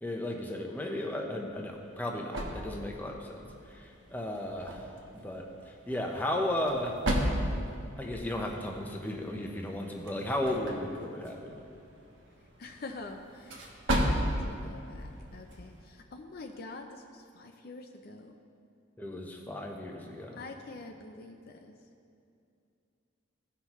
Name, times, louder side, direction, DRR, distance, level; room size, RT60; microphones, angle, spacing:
voice 1, 0.0-3.4 3.7-4.9 5.2-7.0 8.0-11.6 19.0-20.4, left 1 dB, 10° left, 0 dB, 0.7 m, -35 dB
Exterior Prius door open close parking lot verby, 1.4-15.9, equal, 70° right, 1.2 m, -36 dB
voice 2, 12.6-18.4 20.3-21.8, left 3 dB, 50° left, 4 dB, 0.4 m, -46 dB
16.0 x 5.7 x 3.0 m, 2.5 s
head